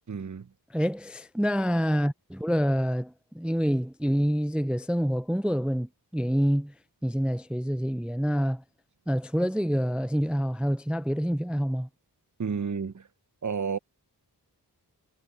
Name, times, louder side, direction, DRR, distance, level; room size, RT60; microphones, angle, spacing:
voice 1, 0.1-0.5 12.4-13.1 13.4-13.8, right 6 dB, 45° right, 0.7 m, -31 dB
voice 2, 0.7-6.7 7.0-8.6 9.1-11.9, equal, 5° right, 0.5 m, -27 dB
wide cardioid pair, 65°, 42 cm